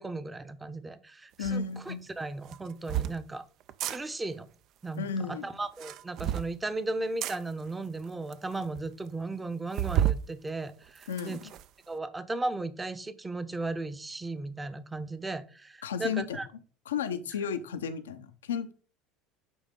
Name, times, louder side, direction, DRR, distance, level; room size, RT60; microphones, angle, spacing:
voice 1, 0.0-3.5 3.9-4.5 4.8-11.4 11.9-16.5, right 2 dB, 15° right, 12 dB, 0.8 m, -36 dB
voice 2, 1.4-2.1 5.0-5.6 11.1-11.4 15.8-16.4 16.9-18.7, left 6 dB, 85° left, 11 dB, 0.7 m, -33 dB
sound 1, 1.4-1.6 2.4-3.2 3.7-4.0 5.6-6.5 7.2-7.4 8.0-8.1 8.3-8.4 8.7-8.8 9.7-10.2 10.7-11.6, right 12 dB, 55° right, 0.4 m, -30 dB
9.2 x 3.5 x 3.7 m, 0.40 s
hypercardioid pair, 75°, 0 cm